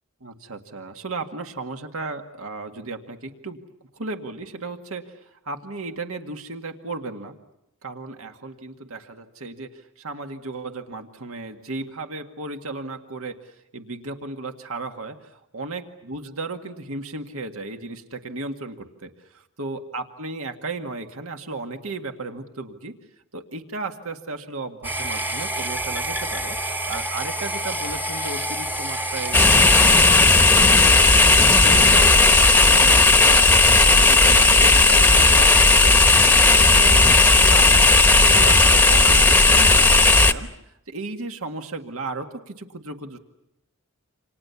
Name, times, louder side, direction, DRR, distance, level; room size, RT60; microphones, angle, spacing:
voice 1, 0.2-3.6 3.9-7.4 7.8-22.9 23.3-31.0 31.4-43.2, right 3 dB, 70° right, 5 dB, 2.0 m, -35 dB
sound 1, 24.8-30.0, right 1 dB, 10° right, 1.2 m, -28 dB
sound 2, 29.3-40.3, left 3 dB, 10° left, 1.1 m, -14 dB
29.0 x 27.5 x 7.1 m, 0.87 s
head